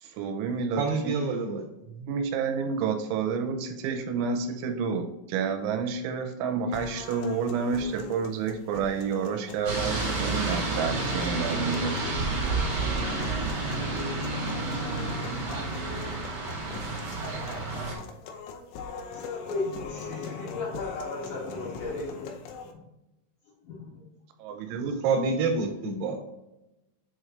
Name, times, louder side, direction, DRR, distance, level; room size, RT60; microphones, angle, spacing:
voice 1, 0.0-1.1 1.9-12.0 24.4-25.0, right 5 dB, 90° right, 5 dB, 3.1 m, -30 dB
voice 2, 0.7-1.7 25.0-26.1, right 4 dB, 70° right, 1 dB, 2.8 m, -27 dB
sound 1, 6.7-22.7, left 5 dB, 90° left, 3.3 m, -42 dB
sound 2, 9.6-17.9, right 3 dB, 55° right, 1.4 m, -30 dB
voice 3, 19.1-22.8 23.6-24.0 24.5-24.9, left 3 dB, 75° left, -5 dB, 1.8 m, -36 dB
7.9 x 3.2 x 3.7 m, 0.96 s
omnidirectional pair, 5.5 m